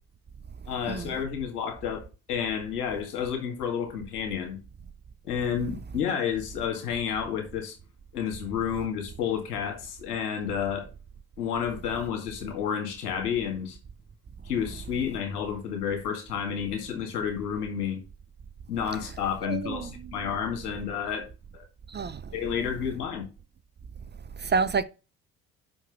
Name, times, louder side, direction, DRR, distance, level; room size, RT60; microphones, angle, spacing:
voice 1, 0.7-4.6 5.3-7.8 8.1-10.9 11.4-13.8 14.5-18.0 18.7-21.3 22.3-23.3, left 8 dB, 85° left, 2.1 m, -30 dB
voice 2, 19.4-20.1 21.9-22.2 24.4-24.8, right 5 dB, 25° right, 0.6 m, -28 dB
5.6 x 5.2 x 6.7 m
hypercardioid pair, 55°, 45 cm